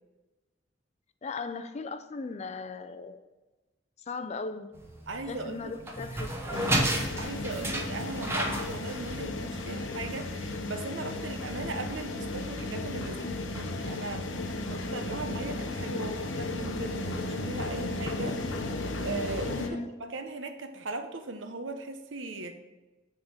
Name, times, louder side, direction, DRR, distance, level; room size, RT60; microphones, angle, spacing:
voice 1, 1.2-3.2 4.1-4.7 5.3-6.9 15.9-16.2 19.6-19.9, left 3 dB, 35° left, 11 dB, 0.4 m, -38 dB
sound 1, 4.7-10.2, right 1 dB, 15° right, 0.8 m, -32 dB
voice 2, 5.1-5.7 7.2-14.3 14.7-18.4 19.0-22.6, right 2 dB, 75° right, 7 dB, 0.8 m, -38 dB
sound 2, 6.5-19.7, left 2 dB, 90° left, 0.8 m, -35 dB
7.1 x 3.7 x 6.5 m, 1.1 s
head